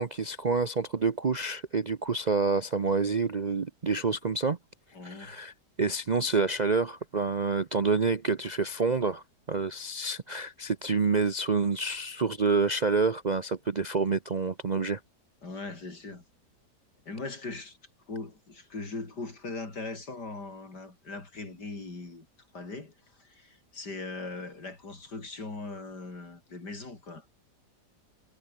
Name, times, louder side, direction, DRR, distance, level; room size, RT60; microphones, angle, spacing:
voice 1, 0.0-4.6 5.0-5.5 5.8-15.0, right 4 dB, 40° right, 0.6 m, -28 dB
voice 2, 4.9-5.4 15.4-16.2 17.1-17.8 18.1-22.3 22.5-27.3, left 3 dB, 75° left, 5.1 m, -40 dB
omnidirectional pair, 1.8 m